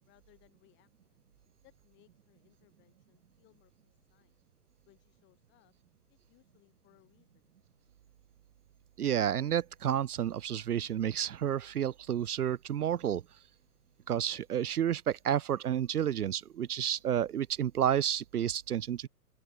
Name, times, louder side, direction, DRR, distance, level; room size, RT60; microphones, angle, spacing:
voice 1, 0.1-1.2 1.6-4.4 4.9-5.7 6.1-7.5, left 19 dB, 25° left, 2.4 m, -67 dB
voice 2, 9.0-13.2 14.1-19.1, right 10 dB, 75° right, 0.6 m, -30 dB
open air
figure-of-eight pair, 115°, 47 cm